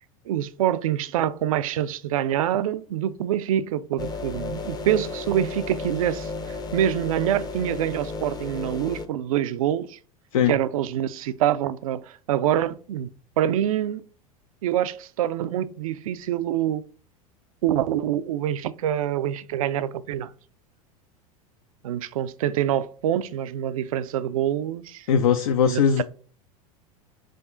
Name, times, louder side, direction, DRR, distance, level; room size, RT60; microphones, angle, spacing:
voice 1, 0.3-10.0 10.5-13.1 13.4-14.0 14.6-16.8 17.6-20.3 21.8-25.1 25.7-26.0, right 11 dB, 65° right, 0.4 m, -25 dB
sound 1, 4.0-9.1, left 3 dB, 20° left, 0.6 m, -33 dB
voice 2, 25.1-26.0, left 7 dB, 70° left, 0.4 m, -20 dB
4.9 x 2.3 x 3.7 m
figure-of-eight pair, 85°, 19 cm